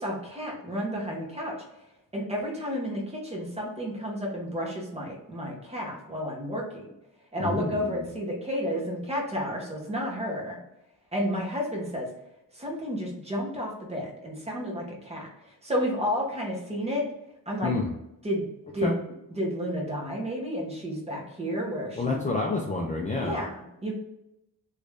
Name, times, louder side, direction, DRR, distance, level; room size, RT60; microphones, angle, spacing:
voice 1, 0.0-1.5 2.1-6.9 7.3-10.6 11.1-12.1 12.5-17.0 17.5-17.7 18.2-18.5 18.7-19.0 19.3-22.2 23.2-23.9, equal, 15° right, -2 dB, 0.8 m, -31 dB
voice 2, 7.4-8.0 17.6-17.9 18.8-18.9 22.0-23.4, left 3 dB, 20° left, -1 dB, 0.3 m, -28 dB
3.1 x 2.6 x 3.3 m, 0.86 s
wide cardioid pair, 180°, 36 cm